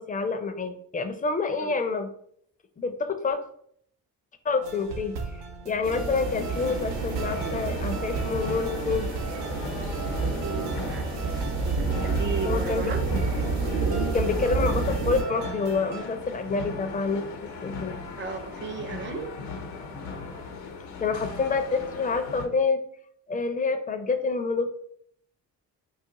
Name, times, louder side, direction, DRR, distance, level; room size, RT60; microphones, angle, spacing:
voice 1, 0.0-2.1 2.8-3.4 4.4-5.2 5.6-9.1 12.4-12.9 14.1-17.2 17.6-18.0 21.0-22.8 23.3-24.7, left 4 dB, 20° left, 8 dB, 0.4 m, -27 dB
sound 1, 4.6-16.0, right 5 dB, 85° right, 0.6 m, -38 dB
sound 2, 5.8-15.2, right 4 dB, 60° right, 0.9 m, -29 dB
sound 3, 6.3-22.5, left 4 dB, 85° left, 0.8 m, -38 dB
voice 2, 10.4-11.1 12.0-13.0 18.2-19.3, right 5 dB, 25° right, 5 dB, 0.6 m, -34 dB
2.4 x 2.4 x 3.9 m, 0.66 s
supercardioid pair, 55°, 42 cm